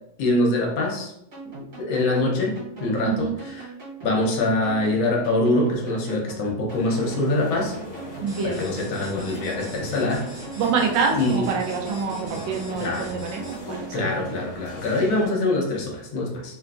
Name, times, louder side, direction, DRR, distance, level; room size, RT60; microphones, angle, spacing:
voice 1, 0.2-1.1 1.8-3.7 4.0-7.7 8.4-10.3 11.1-11.4 12.7-13.1 13.9-16.6, left 2 dB, 80° left, -1 dB, 1.5 m, -24 dB
sound 1, 1.3-14.5, right 2 dB, 50° right, 1.9 m, -40 dB
voice 2, 3.0-3.3 8.2-8.7 10.6-13.4 13.7-14.1, right 5 dB, 75° right, 1 dB, 1.2 m, -26 dB
sound 2, 6.7-15.3, left 1 dB, 60° left, 1.1 m, -39 dB
sound 3, 8.3-13.8, equal, 35° right, 0.6 m, -45 dB
3.6 x 2.4 x 2.3 m, 0.77 s
omnidirectional pair, 2.1 m